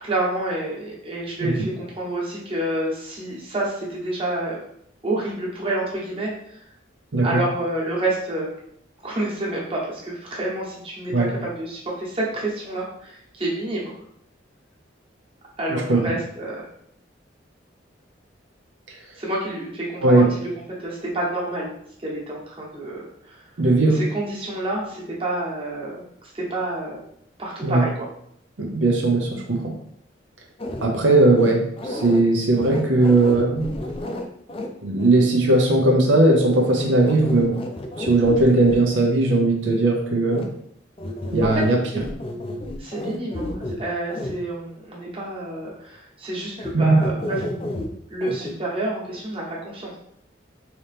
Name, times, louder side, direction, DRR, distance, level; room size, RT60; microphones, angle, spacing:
voice 1, 0.0-4.6 5.0-6.3 7.2-8.5 9.0-13.9 15.6-16.6 19.2-20.3 20.8-21.7 22.0-23.4 23.9-27.0 27.4-27.9 41.4-41.5 41.9-42.0 42.8-47.4 48.1-49.9, right 1 dB, 30° right, -5 dB, 1.1 m, -28 dB
voice 2, 15.7-16.0 20.0-20.3 23.6-24.0 27.6-27.8 28.6-29.7 30.8-33.7 34.8-37.5 38.0-40.5 41.3-41.8 46.7-47.0, right 2 dB, 80° right, 0 dB, 0.7 m, -18 dB
sound 1, 30.6-30.9 31.4-32.2 32.6-34.7 35.0-35.1 36.8-38.8 40.3-40.5 41.0-41.7 42.0-43.8 44.1-44.3 46.6-46.7 47.0-47.9 48.2-48.5, left 1 dB, 30° left, 0.4 m, -31 dB
3.9 x 2.9 x 3.4 m, 0.70 s
head